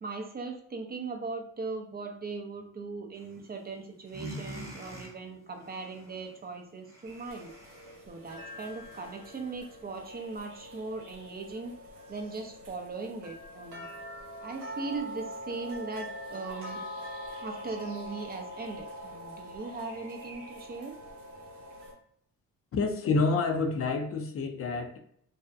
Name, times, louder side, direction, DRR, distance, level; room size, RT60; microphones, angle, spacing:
voice 1, 0.0-7.5 8.1-11.7 12.1-13.9 14.4-16.8 17.4-20.9, right 3 dB, 30° right, 4 dB, 0.5 m, -39 dB
sound 1, 3.1-3.7 4.0-9.5, right 1 dB, 10° right, 0.9 m, -47 dB
sound 2, 7.1-21.9, equal, 75° right, 0.8 m, -44 dB
voice 2, 22.7-25.0, left 3 dB, 45° left, 5 dB, 0.5 m, -28 dB
2.6 x 2.1 x 2.4 m, 0.66 s
supercardioid pair, 65°, 32 cm